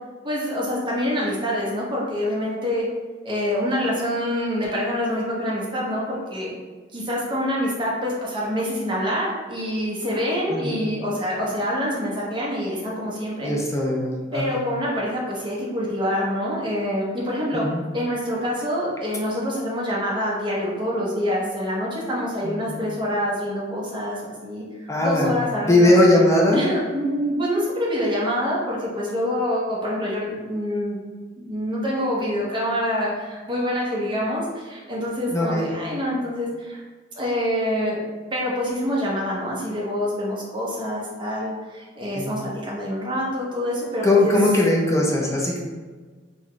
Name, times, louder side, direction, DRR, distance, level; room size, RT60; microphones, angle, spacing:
voice 1, 0.2-2.9 3.2-6.5 6.9-13.5 14.3-17.7 17.9-24.6 25.0-25.9 26.5-31.0 31.4-36.8 37.1-38.0 38.3-44.3, equal, 25° right, -4 dB, 0.8 m, -26 dB
voice 2, 10.5-10.9 13.4-14.6 17.5-17.8 22.4-22.8 24.9-25.4 25.6-26.7 35.3-35.7 42.1-42.3 44.0-45.6, left 1 dB, 15° left, -2 dB, 0.5 m, -20 dB
3.9 x 2.3 x 3.1 m, 1.4 s
head